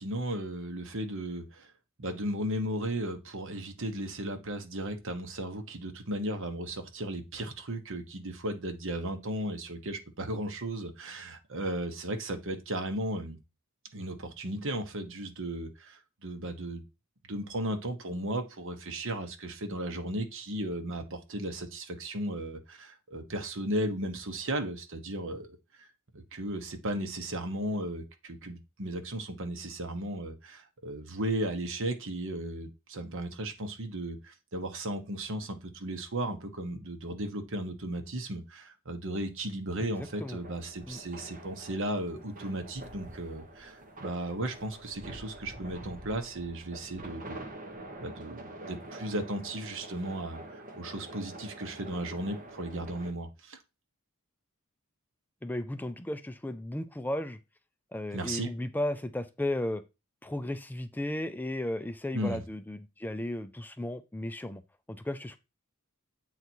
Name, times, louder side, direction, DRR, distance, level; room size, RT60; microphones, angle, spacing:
voice 1, 0.0-1.7 2.0-13.4 13.9-16.8 17.3-25.5 25.8-25.9 26.1-47.4 48.0-53.6 58.1-58.5 62.1-62.4, right 1 dB, 65° right, 1.2 m, -35 dB
voice 2, 39.8-40.4 40.9-41.0 55.4-57.4 57.9-59.8 60.2-64.6 64.9-65.4, left 1 dB, 10° left, 0.4 m, -35 dB
sound 1, 39.9-53.1, right 1 dB, 40° right, 1.3 m, -46 dB
8.0 x 4.0 x 4.5 m
head